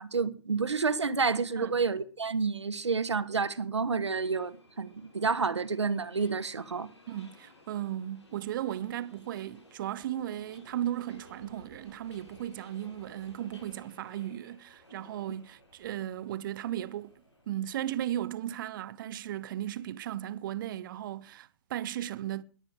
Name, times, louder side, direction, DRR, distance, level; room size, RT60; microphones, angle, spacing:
voice 1, 0.0-6.9, right 4 dB, 80° right, 1.4 m, -29 dB
Subway metro underground, 4.0-17.6, left 2 dB, 80° left, 5.6 m, -57 dB
voice 2, 7.1-17.1 17.5-22.4, right 12 dB, 45° right, 1.0 m, -36 dB
21.0 x 9.2 x 5.0 m
figure-of-eight pair, 115°, 14 cm